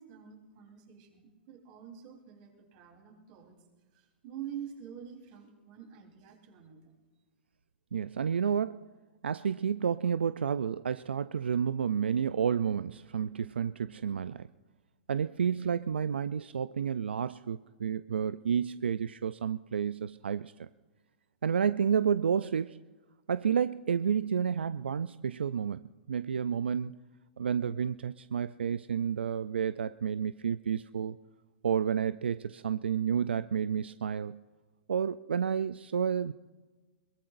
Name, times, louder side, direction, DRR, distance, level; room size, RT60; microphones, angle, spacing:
voice 1, 0.0-3.6 3.9-6.9, right 9 dB, 45° right, 1 dB, 3.8 m, -47 dB
voice 2, 7.9-8.9 9.2-14.5 15.1-20.7 21.4-22.8 23.3-25.8 26.1-27.0 27.4-31.2 31.6-34.4 34.9-36.3, right 7 dB, 90° right, 14 dB, 0.3 m, -30 dB
22.0 x 21.5 x 2.6 m, 1.3 s
hypercardioid pair, 125°, 6 cm